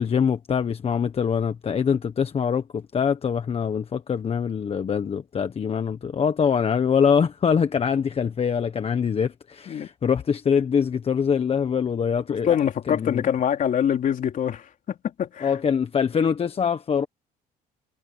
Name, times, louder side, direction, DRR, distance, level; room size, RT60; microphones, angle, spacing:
voice 1, 0.0-12.6 12.9-13.2 15.4-17.1, left 7 dB, 35° left, 1.2 m, -24 dB
voice 2, 12.3-14.7 15.0-15.6, left 9 dB, 50° left, 3.6 m, -24 dB
cardioid pair, 110°, 17 cm